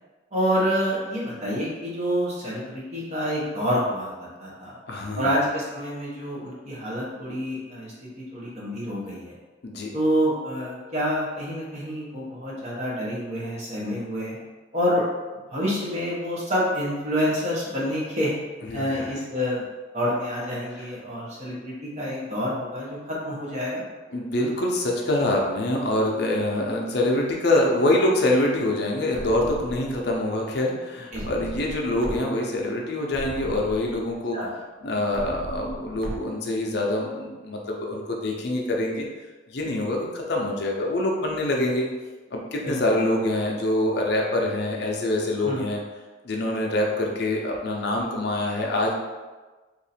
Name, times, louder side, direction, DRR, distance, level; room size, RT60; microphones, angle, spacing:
voice 1, 0.3-4.7 5.1-9.3 9.9-14.4 14.7-15.0 15.3-18.3 18.7-19.6 19.9-23.8 31.1-31.3 34.3-34.5 42.6-42.8 45.4-45.6, equal, 35° right, -5 dB, 1.0 m, -27 dB
voice 2, 4.9-5.3 9.6-9.9 18.6-19.1 20.7-20.8 24.1-34.4 34.8-39.1 39.5-41.9 42.3-45.8 46.2-48.9, left 1 dB, 55° left, -1 dB, 0.5 m, -25 dB
sound 1, 29.1-30.1 31.1-32.2 32.6-32.7 33.1-34.1 35.1-36.2, right 1 dB, 55° right, 0.4 m, -37 dB
2.8 x 2.6 x 4.1 m, 1.2 s
head